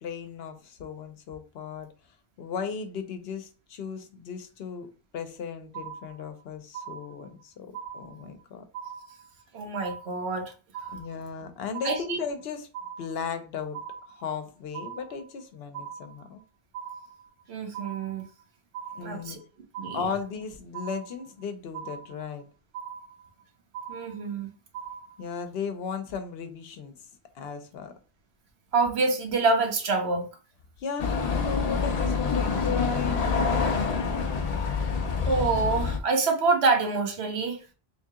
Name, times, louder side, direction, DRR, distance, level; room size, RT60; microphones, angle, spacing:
voice 1, 0.0-1.9 2.4-4.9 5.1-8.6 10.9-12.7 13.0-16.4 18.9-19.4 19.9-22.4 25.2-27.0 27.3-27.9 30.8-33.7, left 6 dB, 75° left, 0.9 m, -36 dB
sound 1, 5.7-6.4 6.7-7.4 7.7-8.4 8.7-9.4 9.7-10.4 10.7-11.4 11.7-12.4 12.7-13.4 13.7-14.4 14.7-15.4 15.7-16.4 16.7-17.4 17.7-18.4 18.7-19.4 19.7-20.4 20.7-21.4 21.7-22.4 22.7-23.4 23.7-24.4 24.7-25.4, right 7 dB, 70° right, 0.8 m, -40 dB
voice 2, 9.5-10.5 11.8-12.2 17.5-18.3 19.0-19.4 19.8-20.0 23.9-24.5 28.7-30.3 35.3-37.6, right 3 dB, 90° right, 1.1 m, -26 dB
sound 2, 31.0-36.0, left 5 dB, 50° left, 0.5 m, -26 dB
3.4 x 2.7 x 3.6 m
omnidirectional pair, 1.0 m